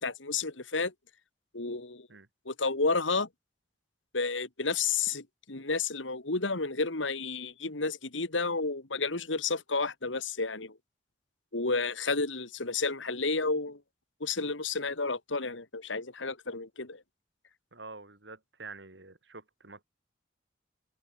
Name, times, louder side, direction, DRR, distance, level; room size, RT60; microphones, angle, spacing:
voice 1, 0.0-0.9 1.5-2.1 2.5-3.3 4.1-10.8 11.5-13.8 14.2-17.0, left 4 dB, 90° left, 2.6 m, -31 dB
voice 2, 17.7-19.8, right 3 dB, 70° right, 3.0 m, -47 dB
head